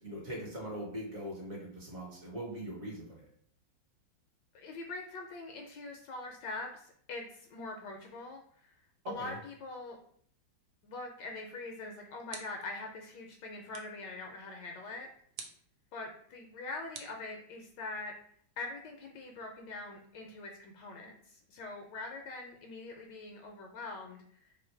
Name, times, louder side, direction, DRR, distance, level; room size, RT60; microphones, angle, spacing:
voice 1, 0.0-3.3 9.2-9.4, right 1 dB, 50° right, -2 dB, 1.2 m, -41 dB
voice 2, 4.5-8.7 9.1-10.0 10.8-15.1 15.9-18.1 18.6-24.5, left 3 dB, 75° left, 2 dB, 1.1 m, -43 dB
sound 1, 12.3-12.8 13.7-14.1 15.4-15.7 16.9-17.8, right 6 dB, 75° right, 1.2 m, -49 dB
3.1 x 2.5 x 4.3 m, 0.62 s
omnidirectional pair, 2.1 m